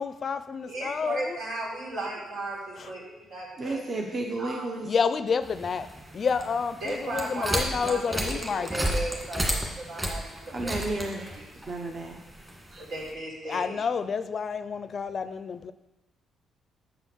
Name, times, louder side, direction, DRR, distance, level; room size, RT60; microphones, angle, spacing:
voice 1, 0.0-1.4 2.8-2.9 4.9-5.9 6.1-8.9 13.5-15.7, left 5 dB, 45° left, 13 dB, 0.5 m, -29 dB
voice 2, 0.7-3.8 4.4-4.7 6.8-10.3 10.6-10.7 11.4-11.5 12.8-13.8, right 2 dB, 80° right, -4 dB, 3.6 m, -35 dB
voice 3, 3.6-4.9 10.5-11.4 11.7-12.2 12.7-12.8, right 2 dB, 40° right, 1 dB, 1.1 m, -32 dB
sound 1, 5.4-13.1, equal, 15° right, 1.9 m, -33 dB
7.6 x 5.6 x 6.2 m, 0.97 s
cardioid pair, 90°, 0 cm